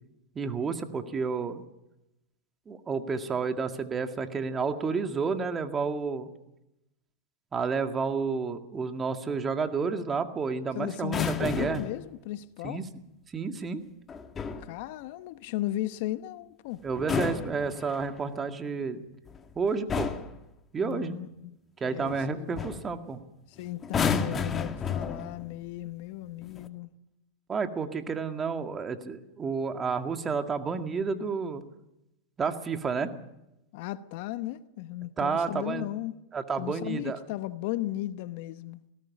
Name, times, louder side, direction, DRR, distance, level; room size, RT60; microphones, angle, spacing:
voice 1, 0.4-1.6 2.7-6.3 7.5-11.8 12.6-12.8 13.3-13.8 16.8-19.1 19.6-20.1 20.7-21.2 21.8-23.2 27.5-31.6 32.4-33.1 35.2-35.9 36.3-37.2, right 5 dB, 25° right, 2.0 m, -30 dB
voice 2, 10.7-12.8 14.6-16.8 20.8-21.6 21.8-22.6 23.5-26.9 33.7-36.2 36.6-38.8, left 15 dB, 60° left, 1.0 m, -36 dB
sound 1, 11.0-12.0 14.1-14.7 16.9-18.2 19.3-19.5 19.9-20.4 22.1-22.3 22.6-22.9 23.8-25.5 26.4-26.7, left 6 dB, 25° left, 1.9 m, -31 dB
19.0 x 17.5 x 8.4 m
hypercardioid pair, 100°, 0 cm